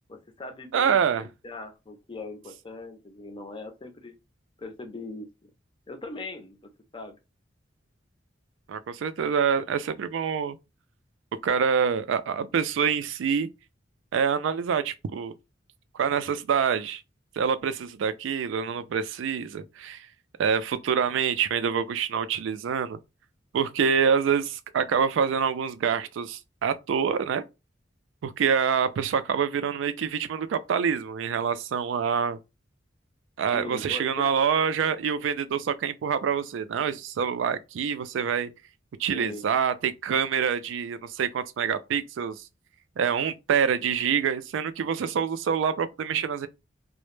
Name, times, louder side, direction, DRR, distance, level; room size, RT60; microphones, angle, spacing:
voice 1, 0.1-4.1 4.6-5.5 5.9-6.6 6.9-7.2 33.5-34.3 39.1-39.5, left 3 dB, 25° left, 0.5 m, -40 dB
voice 2, 0.7-1.2 8.7-10.6 11.4-13.5 14.1-15.3 15.9-17.0 17.4-20.1 20.4-23.0 23.5-27.4 28.2-32.4 33.4-38.5 39.0-42.4 43.0-46.5, right 7 dB, 80° right, 0.3 m, -26 dB
2.1 x 2.0 x 3.0 m
head